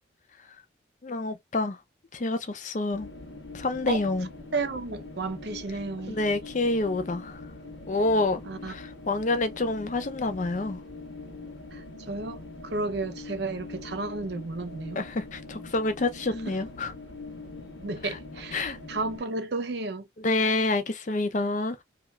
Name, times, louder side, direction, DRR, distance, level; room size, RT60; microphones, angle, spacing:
voice 1, 1.0-1.8 2.1-3.1 3.5-4.3 6.1-7.4 7.9-10.8 15.0-16.9 18.0-18.2 18.5-18.8 20.2-21.8, left 2 dB, 40° left, 0.5 m, -28 dB
sound 1, 2.9-19.2, left 2 dB, 75° left, 1.0 m, -43 dB
voice 2, 4.5-6.2 8.5-8.7 11.7-15.0 16.5-16.6 17.8-20.1, right 3 dB, 60° right, 0.6 m, -33 dB
2.8 x 2.4 x 3.2 m
head